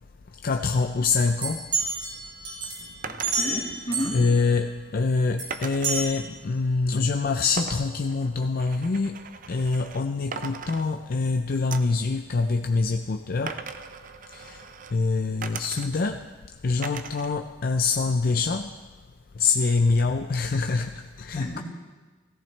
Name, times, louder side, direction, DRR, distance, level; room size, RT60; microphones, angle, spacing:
voice 1, 0.4-1.6 4.1-9.1 9.5-13.6 14.3-14.6 14.9-16.2 16.6-18.7 19.4-21.6, left 4 dB, 50° left, 6 dB, 0.5 m, -25 dB
sound 1, 1.4-4.3 5.4-5.5 5.8-6.0, right 4 dB, 80° right, 5.0 m, -29 dB
sound 2, 3.0-3.5 5.5-6.1 7.6-10.0 10.3-11.3 11.7-12.0 13.5-14.9 15.4-16.2 16.8-17.4 17.7-18.5, right 5 dB, 45° right, 0.6 m, -39 dB
voice 2, 3.1-4.2 21.3-21.6, equal, 30° left, 0 dB, 1.7 m, -32 dB
16.5 x 15.0 x 3.3 m, 1.3 s
head